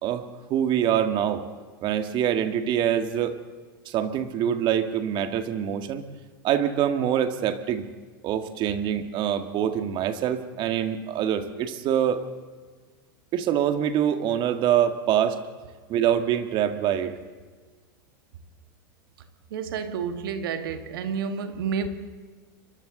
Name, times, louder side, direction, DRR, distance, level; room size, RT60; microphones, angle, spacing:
voice 1, 0.5-1.4 1.8-3.4 3.9-6.0 6.4-7.9 8.2-12.2 13.3-15.4 15.9-17.1, right 9 dB, 45° right, 7 dB, 1.9 m, -25 dB
voice 2, 19.5-21.9, right 6 dB, 75° right, 7 dB, 2.0 m, -30 dB
29.5 x 23.5 x 4.0 m, 1.5 s
hypercardioid pair, 110°, 12 cm